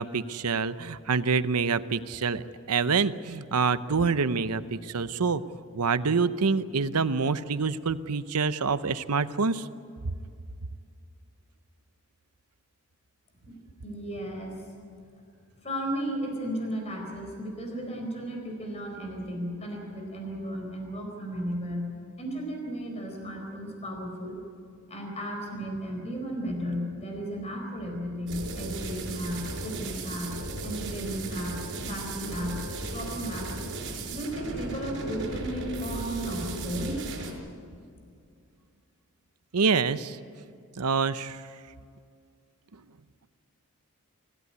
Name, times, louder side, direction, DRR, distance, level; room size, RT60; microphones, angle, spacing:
voice 1, 0.0-5.4 5.7-9.6 39.5-40.2 40.8-41.4, right 5 dB, 85° right, 13 dB, 0.8 m, -26 dB
voice 2, 13.8-14.7 15.6-21.9 22.2-24.4 24.9-33.5 34.1-37.0, equal, 30° left, 2 dB, 4.3 m, -34 dB
sound 1, 28.3-37.3, right 2 dB, 55° right, 5.0 m, -36 dB
25.5 x 15.5 x 9.6 m, 2.3 s
head